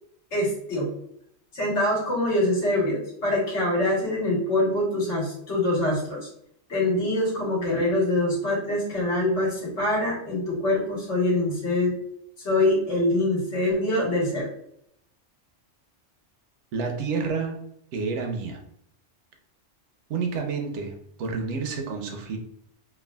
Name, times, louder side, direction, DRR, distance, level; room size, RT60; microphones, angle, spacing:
voice 1, 0.3-0.9 1.5-6.3 6.7-12.0 12.4-14.5, left 1 dB, 75° left, -5 dB, 1.5 m, -24 dB
voice 2, 16.7-17.6 17.9-18.6 20.1-22.4, right 4 dB, 80° right, 3 dB, 0.9 m, -29 dB
3.3 x 2.2 x 2.2 m, 0.72 s
omnidirectional pair, 1.2 m